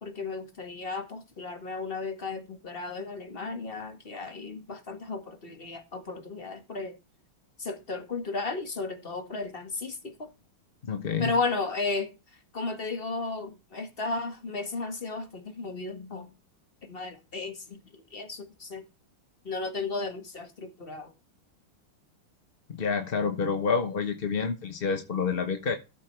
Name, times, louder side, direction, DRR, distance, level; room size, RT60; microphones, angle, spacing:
voice 1, 0.0-7.0 7.6-10.3 11.2-12.1 12.5-16.3 16.8-18.8 19.4-21.1, left 3 dB, 30° left, 1.8 m, -34 dB
voice 2, 10.9-11.3 22.7-25.8, left 5 dB, 45° left, 0.7 m, -28 dB
13.5 x 7.7 x 3.3 m
omnidirectional pair, 2.3 m